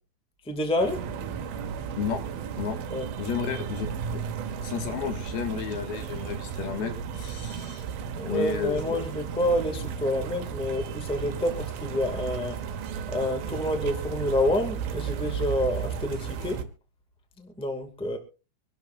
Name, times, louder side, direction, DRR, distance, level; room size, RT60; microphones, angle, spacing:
voice 1, 0.4-1.0 2.9-3.1 8.1-12.6 13.1-16.7 17.4-18.2, left 1 dB, ahead, 5 dB, 1.3 m, -28 dB
sound 1, 0.8-16.6, right 7 dB, 80° right, 3.0 m, -34 dB
voice 2, 3.2-4.2 4.6-7.8 8.2-9.0, left 7 dB, 85° left, 5 dB, 3.9 m, -32 dB
25.5 x 12.0 x 2.6 m, 0.31 s
omnidirectional pair, 4.3 m